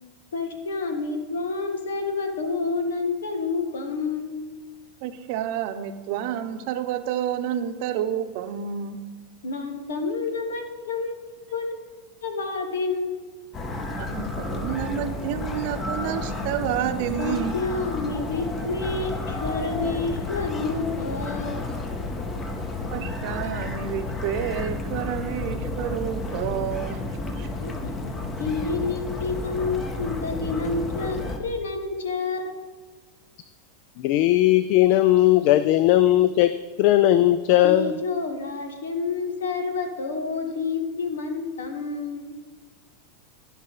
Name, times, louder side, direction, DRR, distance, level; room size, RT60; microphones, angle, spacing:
voice 1, 0.3-4.4 9.4-11.7 12.2-13.2 17.2-21.7 27.6-27.7 28.0-32.6 37.6-42.3, left 4 dB, 80° left, 5 dB, 1.5 m, -29 dB
voice 2, 5.0-9.0 14.0-17.5 22.9-27.5, right 10 dB, 60° right, 9 dB, 0.8 m, -29 dB
sound 1, 13.5-31.4, left 2 dB, 25° left, 1.3 m, -31 dB
voice 3, 34.0-37.9, left 14 dB, 55° left, 14 dB, 0.3 m, -18 dB
15.0 x 5.5 x 4.1 m, 1.3 s
hypercardioid pair, 95°, 0 cm